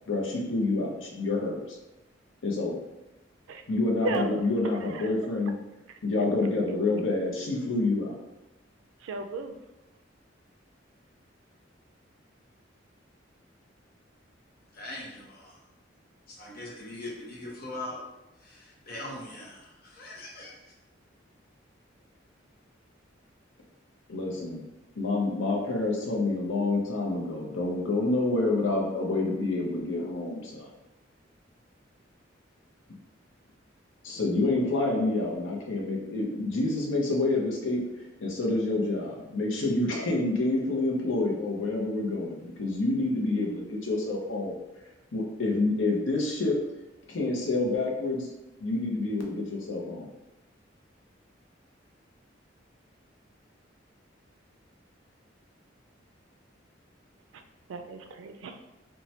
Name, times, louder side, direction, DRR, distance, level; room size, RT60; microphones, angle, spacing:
voice 1, 0.1-1.8 2.4-2.7 3.7-5.5 6.0-8.2 24.1-24.6 25.0-30.7 34.0-37.8 38.2-44.6 45.1-46.6 47.1-48.3 48.6-50.1, left 2 dB, 85° left, -1 dB, 0.6 m, -28 dB
voice 2, 4.0-4.5 4.9-5.1 5.9-6.0 9.0-9.6 57.3-57.4 57.7-58.6, right 3 dB, 85° right, 7 dB, 0.3 m, -35 dB
voice 3, 14.7-15.6 16.3-18.0 18.4-20.6, left 1 dB, 50° left, -4 dB, 0.8 m, -41 dB
3.1 x 2.2 x 2.8 m, 0.98 s
head